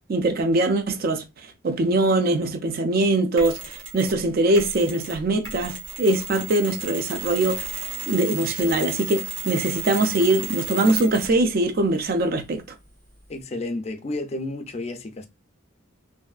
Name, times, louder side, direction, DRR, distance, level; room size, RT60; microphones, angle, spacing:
voice 1, 0.1-1.2 1.6-7.7 8.1-12.6, right 2 dB, 50° right, 0.4 m, -22 dB
Mechanisms, 3.4-4.2 4.5-11.4, right 6 dB, 85° right, 1.5 m, -34 dB
voice 2, 13.3-15.3, left 2 dB, 30° left, 0.4 m, -31 dB
3.0 x 2.5 x 2.4 m
head